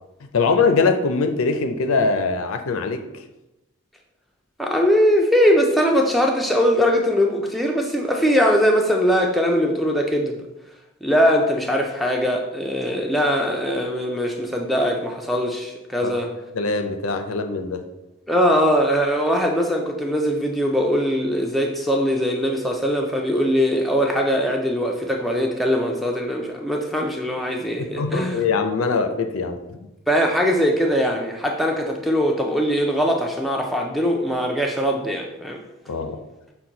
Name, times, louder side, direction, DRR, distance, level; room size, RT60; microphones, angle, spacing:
voice 1, 0.3-3.1 16.0-16.2 16.5-17.8 28.0-29.8 35.9-36.2, left 4 dB, 90° left, 7 dB, 0.5 m, -22 dB
voice 2, 4.6-10.4 11.0-16.3 18.3-28.4 30.1-35.6, equal, ahead, 0 dB, 0.4 m, -21 dB
5.9 x 2.2 x 3.8 m, 0.95 s
head